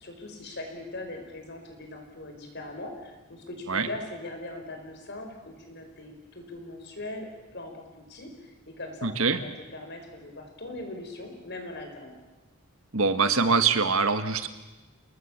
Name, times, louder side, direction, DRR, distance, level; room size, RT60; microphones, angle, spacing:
voice 1, 0.0-12.1, left 2 dB, 50° left, 4 dB, 5.2 m, -40 dB
voice 2, 9.0-9.4 12.9-14.5, right 4 dB, 70° right, 9 dB, 1.7 m, -23 dB
29.0 x 19.5 x 7.4 m, 1.1 s
head